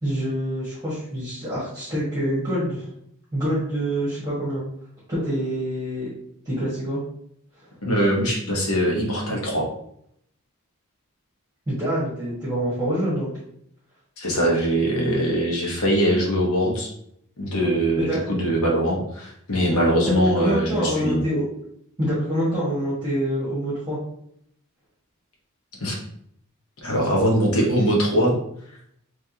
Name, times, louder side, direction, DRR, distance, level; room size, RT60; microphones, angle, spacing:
voice 1, 0.0-2.9 3.3-4.6 5.1-6.1 6.4-7.0 11.7-13.3 18.0-18.3 19.7-21.4 22.0-24.0, equal, 15° right, -9 dB, 1.5 m, -26 dB
voice 2, 7.8-9.7 14.2-16.9 17.4-21.2 25.8-26.0 26.8-28.3, equal, 80° left, -2 dB, 1.1 m, -22 dB
3.5 x 3.3 x 2.8 m, 0.71 s
head